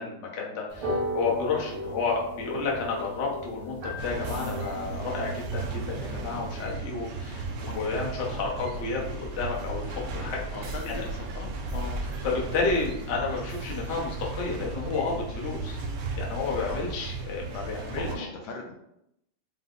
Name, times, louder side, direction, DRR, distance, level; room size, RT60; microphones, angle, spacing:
voice 1, 0.0-7.4 7.7-10.4 11.7-15.8 16.2-18.3, left 4 dB, 55° left, -3 dB, 0.8 m, -31 dB
sound 1, 0.7-6.7, left 1 dB, 85° right, 1.8 m, -36 dB
sound 2, 4.0-18.1, right 3 dB, 70° right, 1.1 m, -35 dB
voice 2, 10.5-11.5 15.4-15.5 16.7-16.8 17.9-18.7, left 3 dB, 75° left, 1 dB, 1.3 m, -39 dB
5.2 x 2.0 x 3.7 m, 0.80 s
omnidirectional pair, 2.3 m